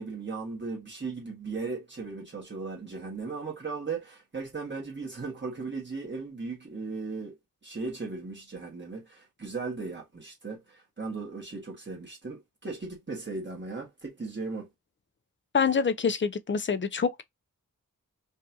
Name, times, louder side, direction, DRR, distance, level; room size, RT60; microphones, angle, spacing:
voice 1, 0.0-7.3 7.6-14.7, right 4 dB, 30° right, 1.5 m, -37 dB
voice 2, 15.5-17.2, left 6 dB, 35° left, 0.5 m, -26 dB
5.3 x 2.4 x 2.8 m
wide cardioid pair, 130°, 35 cm